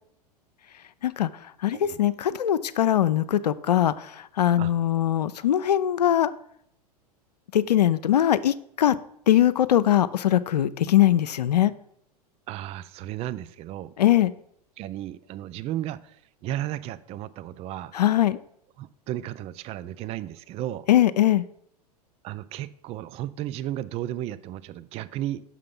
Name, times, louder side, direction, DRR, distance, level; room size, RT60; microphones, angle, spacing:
voice 1, 1.0-6.3 7.5-8.9 9.3-11.7 14.0-14.3 17.9-18.4 20.9-21.4, left 11 dB, 85° left, 14 dB, 0.4 m, -21 dB
voice 2, 1.7-2.1 4.6-4.7 12.5-13.9 14.8-17.9 18.8-20.9 22.2-25.4, right 13 dB, 30° right, 15 dB, 0.4 m, -34 dB
6.1 x 5.7 x 5.3 m, 0.71 s
hypercardioid pair, 95°, 20 cm